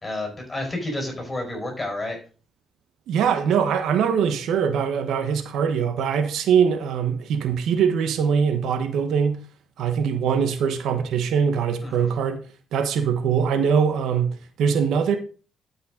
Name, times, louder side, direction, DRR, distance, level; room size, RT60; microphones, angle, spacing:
voice 1, 0.0-2.2 11.8-12.1, left 1 dB, 20° left, 4.7 m, -30 dB
voice 2, 3.1-9.4 9.8-12.4 12.7-15.2, right 7 dB, 80° right, 1.0 m, -22 dB
12.0 x 5.6 x 3.8 m
cardioid pair, 90°, 0 cm